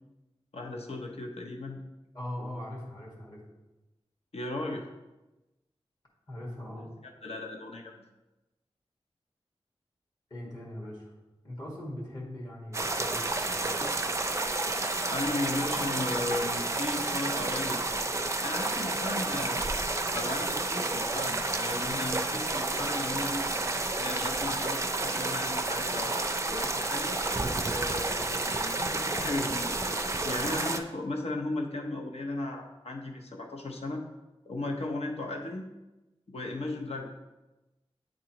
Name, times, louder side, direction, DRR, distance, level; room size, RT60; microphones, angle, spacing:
voice 1, 0.5-1.8 4.3-4.8 7.0-8.0 15.1-17.8 18.4-19.6 20.1-23.4 23.9-27.2 27.7-29.8 30.2-34.0 34.5-35.6 36.3-37.1, left 2 dB, 70° left, 2 dB, 0.7 m, -36 dB
voice 2, 2.1-3.4 6.3-6.9 10.3-11.1 11.4-14.0, left 1 dB, 40° left, -3 dB, 1.8 m, -41 dB
sound 1, 12.7-30.8, right 2 dB, 25° right, 0.4 m, -30 dB
8.6 x 3.8 x 3.0 m, 1.0 s
wide cardioid pair, 90°, 11 cm